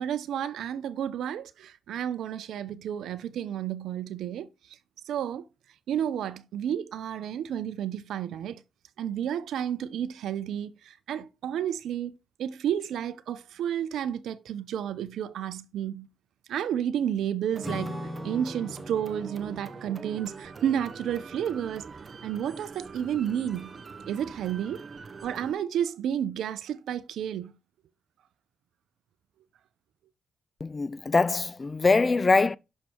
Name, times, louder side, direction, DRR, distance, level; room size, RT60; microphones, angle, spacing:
voice 1, 0.0-4.5 5.1-5.4 5.9-8.6 9.0-16.1 16.5-21.9 22.2-23.7 24.1-24.9 25.2-27.5, right 9 dB, 80° right, 0.6 m, -31 dB
sound 1, 17.5-25.5, right 5 dB, 45° right, 0.9 m, -44 dB
Acoustic guitar / Strum, 17.6-22.4, left 1 dB, 10° left, 1.6 m, -42 dB
voice 2, 30.6-32.6, left 3 dB, 35° left, 0.4 m, -23 dB
6.4 x 5.3 x 4.4 m
cardioid pair, 65°, 0 cm